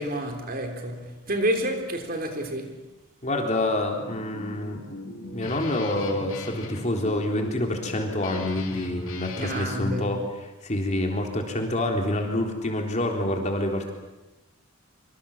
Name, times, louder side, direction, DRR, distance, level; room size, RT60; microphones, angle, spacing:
voice 1, 0.0-2.8 9.4-10.1, equal, 45° right, 3.7 m, -29 dB
voice 2, 3.2-4.8 5.3-10.2 10.6-13.9, left 1 dB, 35° left, 3.8 m, -27 dB
Guitar, 4.0-9.8, left 2 dB, 65° left, 4.0 m, -39 dB
26.0 x 25.5 x 7.3 m
head